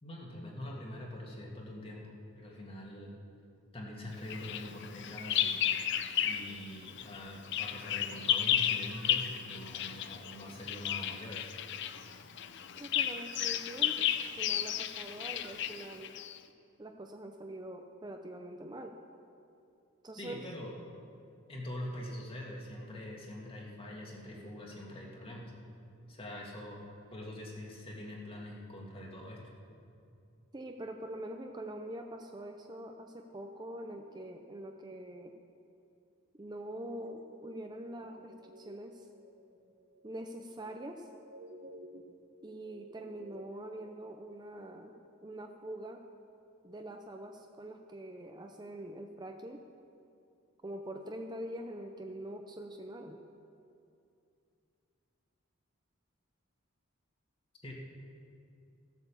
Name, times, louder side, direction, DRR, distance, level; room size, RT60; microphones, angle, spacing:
voice 1, 0.0-2.0 2.4-3.2 3.7-5.6 6.2-11.5 20.2-20.8 21.5-25.5 26.1-26.8 27.1-29.4 57.6-57.7, left 1 dB, 25° left, -2 dB, 2.0 m, -44 dB
Bird vocalization bird call bird song, 4.3-6.6 6.9-16.4, left 10 dB, 60° left, 0.5 m, -33 dB
voice 2, 12.8-16.1 16.8-19.0 20.0-20.4 30.5-35.3 36.4-39.1 40.0-41.1 42.4-44.9 45.2-46.0 46.6-49.6 50.6-53.2, right 1 dB, 20° right, 4 dB, 0.6 m, -44 dB
sound 1, 36.6-44.0, equal, 55° right, 1.2 m, -55 dB
15.5 x 8.1 x 7.0 m, 2.6 s
head